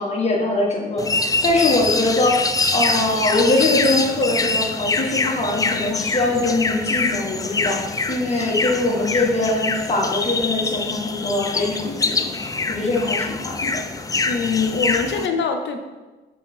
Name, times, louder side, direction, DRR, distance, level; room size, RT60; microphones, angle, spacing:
voice 1, 0.0-2.4 2.7-13.8, left 2 dB, 35° left, -2 dB, 1.6 m, -22 dB
sound 1, 1.0-15.3, left 3 dB, 20° left, 0.4 m, -24 dB
voice 2, 14.3-15.8, left 5 dB, 65° left, 5 dB, 0.7 m, -23 dB
6.0 x 3.6 x 4.3 m, 1.2 s
cardioid pair, 90°, 20 cm